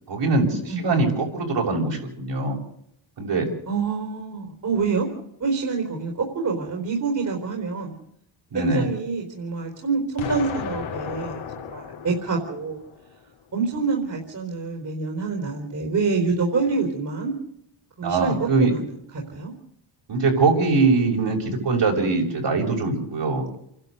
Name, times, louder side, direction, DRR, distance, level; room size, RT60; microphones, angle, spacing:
voice 1, 0.1-2.6 3.2-3.5 8.5-8.9 18.0-18.7 20.1-23.6, right 3 dB, 60° right, 0 dB, 6.9 m, -22 dB
voice 2, 3.7-5.1 5.4-8.0 8.5-12.8 13.5-17.3 18.0-19.5, right 4 dB, 40° right, 2 dB, 4.5 m, -26 dB
Explosion, 10.2-13.2, left 7 dB, 75° left, 3.5 m, -34 dB
28.0 x 12.0 x 8.2 m, 0.74 s
cardioid pair, 120°, 48 cm